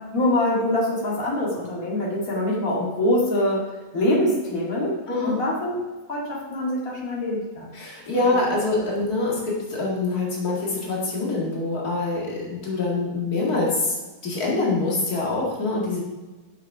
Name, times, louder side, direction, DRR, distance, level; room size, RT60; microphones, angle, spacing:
voice 1, 0.1-5.0 5.2-5.8 6.1-7.7 8.4-8.5, left 1 dB, 65° left, -5 dB, 2.6 m, -24 dB
voice 2, 5.1-5.4 7.7-16.0, left 2 dB, 85° left, -4 dB, 2.6 m, -25 dB
10.5 x 6.6 x 4.8 m, 1.2 s
omnidirectional pair, 1.6 m